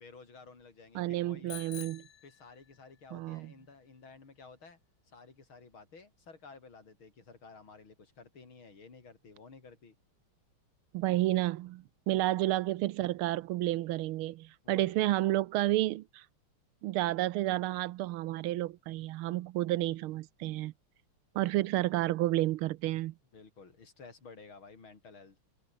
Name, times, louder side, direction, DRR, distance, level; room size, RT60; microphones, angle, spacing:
voice 1, 0.0-1.7 2.2-4.8 5.0-10.0 14.6-15.0 21.4-21.8 23.3-25.5, left 4 dB, 65° left, 4.7 m, -53 dB
voice 2, 0.9-2.0 3.1-3.5 10.9-16.2 16.8-20.7 21.3-23.1, right 16 dB, 80° right, 1.5 m, -31 dB
Bicycle bell, 1.5-3.0, left 10 dB, 85° left, 0.6 m, -48 dB
omnidirectional pair, 2.4 m